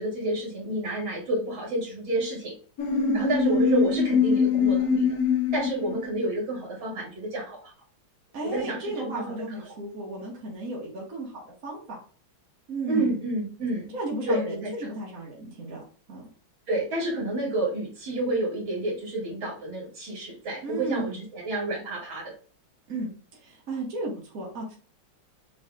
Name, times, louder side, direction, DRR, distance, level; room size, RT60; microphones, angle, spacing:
voice 1, 0.0-2.5 3.1-5.2 5.5-7.7 8.5-9.6 12.9-13.9 14.2-14.7 16.7-22.3, right 1 dB, 65° right, -4 dB, 3.0 m, -29 dB
sound 1, 2.8-6.1, left 5 dB, 60° left, 1.1 m, -23 dB
voice 2, 2.9-3.3 8.3-12.0 12.7-13.2 13.9-15.8 16.1-16.3 20.6-21.2 22.9-24.8, right 2 dB, 45° right, -3 dB, 1.7 m, -34 dB
6.4 x 3.4 x 2.4 m, 0.41 s
omnidirectional pair, 2.4 m